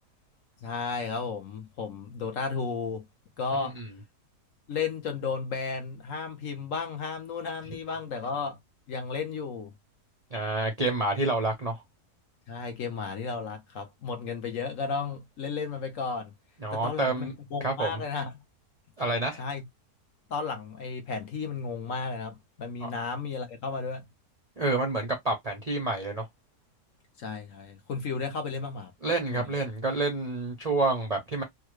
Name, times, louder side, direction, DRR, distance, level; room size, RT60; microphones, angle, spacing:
voice 1, 0.6-3.1 3.4-3.8 4.7-8.6 8.9-9.7 12.5-16.3 16.7-18.3 19.4-19.6 20.3-24.1 27.2-28.9 29.3-29.4, left 5 dB, 60° left, 1.0 m, -33 dB
voice 2, 10.3-11.8 16.6-17.3 17.6-18.0 19.0-19.4 24.6-26.3 29.0-31.4, right 2 dB, 45° right, 0.5 m, -28 dB
3.4 x 2.2 x 3.0 m
omnidirectional pair, 1.7 m